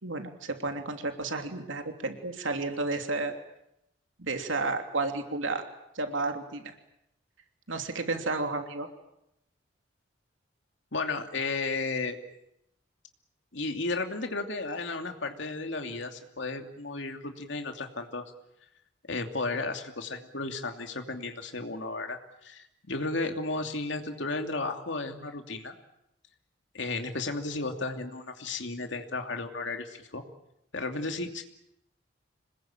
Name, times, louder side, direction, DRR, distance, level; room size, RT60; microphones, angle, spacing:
voice 1, 0.0-3.3 4.2-5.6 5.9-6.7 7.7-8.9, right 3 dB, 90° right, 5 dB, 3.0 m, -32 dB
voice 2, 10.9-12.2 13.5-18.2 19.1-25.7 26.7-30.2 30.7-31.4, left 3 dB, 70° left, 5 dB, 2.8 m, -34 dB
26.5 x 20.5 x 9.1 m, 0.81 s
head